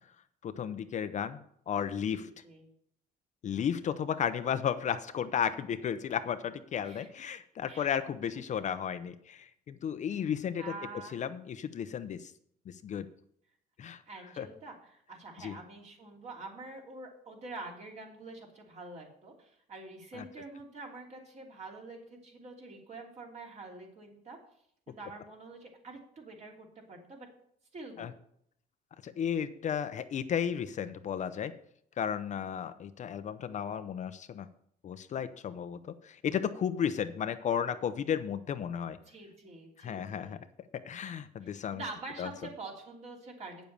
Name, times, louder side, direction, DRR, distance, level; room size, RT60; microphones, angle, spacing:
voice 1, 0.4-1.4 1.7-2.3 3.4-10.6 11.1-12.3 12.7-13.1 13.8-14.0 14.4-14.5 15.4-15.5 20.2-20.3 28.0-28.1 29.0-31.5 32.0-34.5 34.8-39.0 39.8-40.4 40.8-41.8 42.2-42.3, left 8 dB, 45° left, 10 dB, 0.7 m, -34 dB
voice 2, 2.1-2.7 6.8-7.1 7.7-7.9 8.2-8.4 10.6-11.2 14.1-24.4 24.9-27.3 27.7-28.1 38.9-40.4 41.4-43.6, right 3 dB, 40° right, 0 dB, 3.1 m, -46 dB
9.0 x 7.2 x 6.8 m, 0.69 s
cardioid pair, 110°, 17 cm